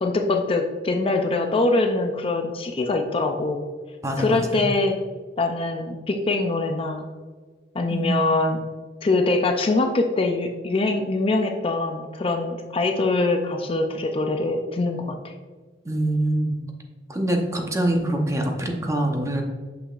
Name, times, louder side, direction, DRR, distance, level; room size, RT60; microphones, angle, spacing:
voice 1, 0.0-3.7 4.2-5.0 5.4-7.1 7.7-8.6 9.0-15.3, left 2 dB, 30° left, 4 dB, 0.5 m, -23 dB
voice 2, 4.0-4.6 7.9-8.3 15.8-16.6 17.1-19.4, right 1 dB, 15° right, 2 dB, 0.7 m, -24 dB
6.3 x 6.0 x 2.5 m, 1.4 s
head